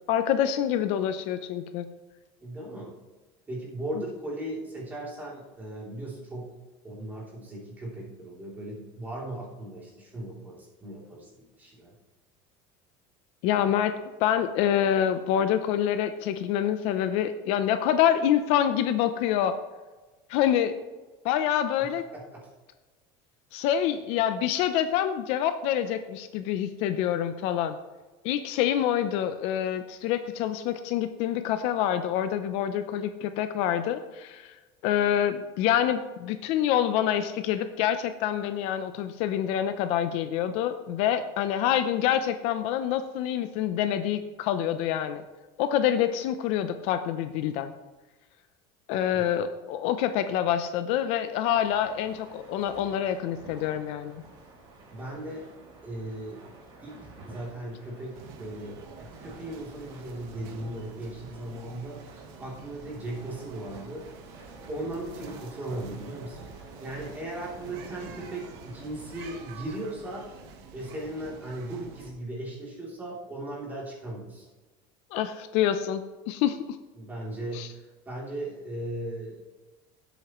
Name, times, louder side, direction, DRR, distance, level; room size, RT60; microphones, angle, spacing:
voice 1, 0.1-1.9 13.4-13.9 14.2-19.5 20.3-20.8 21.2-22.0 23.5-27.8 28.2-34.5 34.8-45.2 45.6-47.7 48.9-54.2 75.1-76.8 77.5-77.7, left 10 dB, 55° left, 9 dB, 0.6 m, -26 dB
voice 2, 2.4-2.9 3.5-6.5 6.8-11.9 22.1-22.5 49.1-49.3 54.9-55.5 55.8-56.4 56.8-57.0 57.2-64.1 64.7-70.3 70.7-74.5 76.9-79.4, right 1 dB, 15° right, -4 dB, 3.0 m, -37 dB
sound 1, 51.5-69.3, right 3 dB, 35° right, 3.9 m, -50 dB
sound 2, 58.1-72.1, right 5 dB, 65° right, 1.5 m, -47 dB
16.5 x 8.1 x 3.1 m, 1.2 s
cardioid pair, 170°, 13 cm